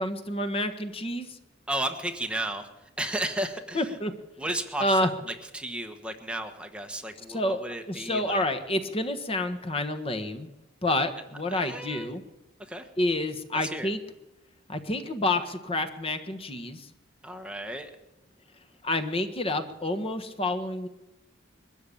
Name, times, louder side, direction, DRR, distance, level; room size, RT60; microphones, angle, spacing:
voice 1, 0.0-1.4 3.7-4.1 4.8-5.1 7.3-7.6 7.9-10.5 10.8-12.2 13.0-14.0 14.7-16.9 18.8-20.9, left 1 dB, 30° left, 9 dB, 1.4 m, -28 dB
voice 2, 1.7-2.7 3.0-4.0 4.4-8.4 11.5-12.1 12.7-12.9 13.5-13.9 17.2-17.9, right 1 dB, 5° right, 5 dB, 1.3 m, -34 dB
22.5 x 13.5 x 8.6 m, 0.99 s
head